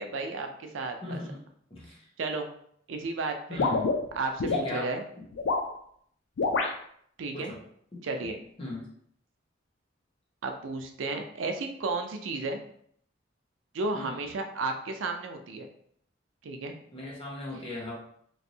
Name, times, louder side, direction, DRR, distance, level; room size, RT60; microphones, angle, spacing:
voice 1, 0.0-1.2 2.2-2.5 2.9-3.6 4.2-5.0 7.2-7.5 8.0-8.4 10.4-12.6 13.7-15.7 16.4-16.7, right 3 dB, 85° right, 5 dB, 0.4 m, -33 dB
voice 2, 1.0-1.4 1.7-2.1 3.5-3.9 4.4-4.9 7.3-7.6 7.9-8.0 8.6-8.9 13.9-14.2 16.9-17.9, left 2 dB, 30° left, -4 dB, 0.9 m, -38 dB
sound 1, 3.6-4.7 5.3-5.7 6.4-6.7, left 3 dB, 75° left, 0.4 m, -27 dB
3.1 x 2.6 x 2.7 m, 0.66 s
head